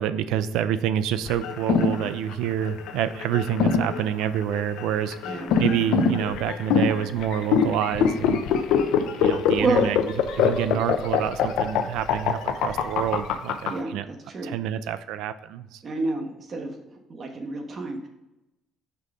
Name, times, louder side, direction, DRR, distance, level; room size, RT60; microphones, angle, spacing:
voice 1, 0.0-8.6 8.9-10.0 10.3-14.0 14.4-15.8, right 10 dB, 85° right, 12 dB, 0.4 m, -27 dB
sound 1, 1.2-13.7, left 7 dB, 80° left, 0.6 m, -23 dB
voice 2, 13.7-14.5 15.8-16.8 17.1-18.1, right 2 dB, 40° right, 3 dB, 1.2 m, -29 dB
5.5 x 3.9 x 4.9 m, 0.92 s
cardioid pair, 100°, 0 cm